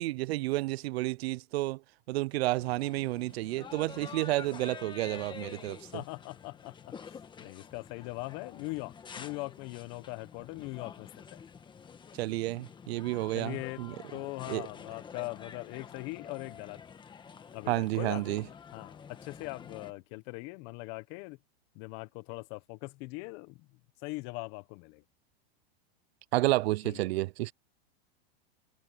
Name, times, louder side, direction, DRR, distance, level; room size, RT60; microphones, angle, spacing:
voice 1, 0.0-1.8 2.1-5.8 12.2-13.9 14.5-14.7 17.7-18.4 26.3-27.5, right 18 dB, 70° right, 0.5 m, -30 dB
sound 1, 2.5-19.9, left 6 dB, 15° left, 1.5 m, -48 dB
voice 2, 5.9-11.4 13.3-16.8 17.5-21.4 21.7-23.7 24.0-25.0 26.8-27.0, left 24 dB, 40° left, 0.9 m, -41 dB
supercardioid pair, 150°, 32 cm